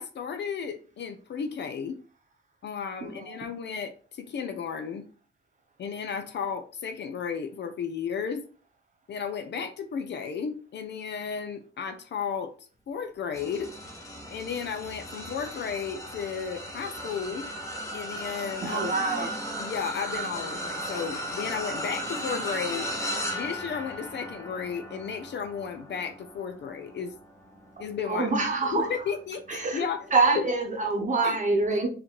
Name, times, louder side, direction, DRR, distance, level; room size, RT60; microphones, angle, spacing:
voice 1, 0.0-2.0 2.6-5.1 5.8-8.4 9.1-13.7 14.3-17.4 17.9-18.9 19.2-19.3 19.6-22.9 23.3-27.1 27.8-28.4 28.7-30.4 31.2-31.4, left 6 dB, 55° left, 0.5 m, -34 dB
sound 1, 13.3-28.8 29.4-29.6 30.9-31.0, equal, 15° left, 1.0 m, -36 dB
voice 2, 18.6-19.3 28.1-28.9 29.5-29.8 30.1-31.9, right 3 dB, 35° right, 0.9 m, -25 dB
4.0 x 3.0 x 3.0 m
cardioid pair, 85°, 21 cm